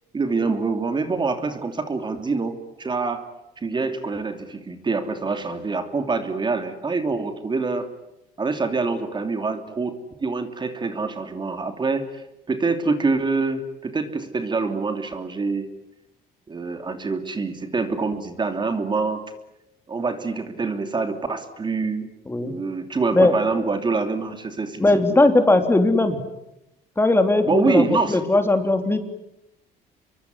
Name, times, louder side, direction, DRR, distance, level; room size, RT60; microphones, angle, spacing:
voice 1, 0.1-3.2 3.6-7.9 8.4-15.7 16.5-19.2 19.9-22.1 22.4-25.2 27.4-28.2, right 4 dB, 25° right, 7 dB, 2.8 m, -25 dB
voice 2, 24.8-26.2 27.0-29.0, left 2 dB, 15° left, 7 dB, 3.3 m, -18 dB
26.5 x 23.5 x 9.7 m, 0.88 s
cardioid pair, 110°, 17 cm